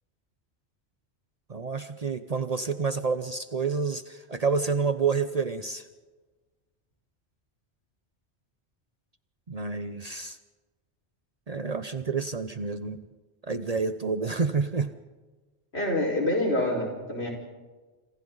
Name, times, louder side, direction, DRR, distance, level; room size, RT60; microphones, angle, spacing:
voice 1, 1.5-5.9 9.5-10.4 11.5-13.0 13.5-14.9, right 5 dB, 40° right, 10 dB, 0.8 m, -29 dB
voice 2, 15.7-17.3, left 1 dB, 70° left, 0 dB, 5.2 m, -26 dB
27.5 x 26.5 x 4.0 m, 1.3 s
omnidirectional pair, 1.1 m